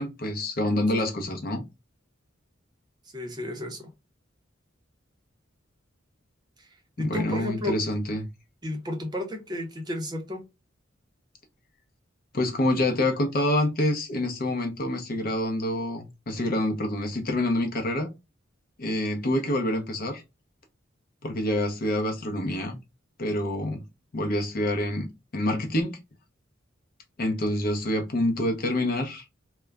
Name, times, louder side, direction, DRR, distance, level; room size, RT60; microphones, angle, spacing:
voice 1, 0.0-1.6 7.0-8.3 12.3-18.1 18.8-20.2 21.2-22.8 23.2-23.8 24.1-25.1 25.3-26.0 27.2-29.2, left 1 dB, 50° left, 0.6 m, -27 dB
voice 2, 3.1-3.9 6.6-6.7 7.0-7.8 8.6-10.4, left 1 dB, 20° right, 0.5 m, -32 dB
2.2 x 2.0 x 3.4 m
head